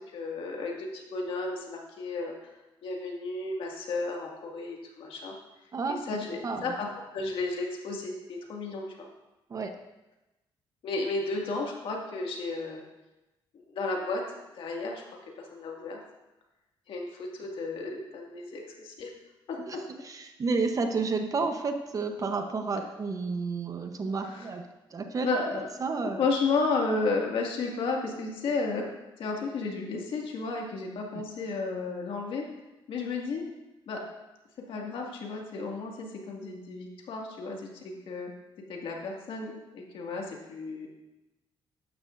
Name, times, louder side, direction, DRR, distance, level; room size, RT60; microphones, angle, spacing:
voice 1, 0.1-2.3 2.8-5.4 5.9-6.9 7.1-9.1 10.8-12.8 13.7-14.2 14.5-16.0 16.9-19.1 19.5-19.8 24.2-24.5 25.2-25.7 26.0-28.8 29.2-32.4 32.9-33.4 33.9-34.0 34.7-38.3 38.7-40.9, left 3 dB, 70° left, 0 dB, 2.1 m, -33 dB
voice 2, 6.4-6.7 9.5-9.7 19.7-19.8 20.0-25.3 25.8-26.2 31.1-31.2, right 4 dB, 40° right, 6 dB, 0.9 m, -31 dB
12.0 x 10.5 x 2.6 m, 1.0 s
cardioid pair, 110°, 9 cm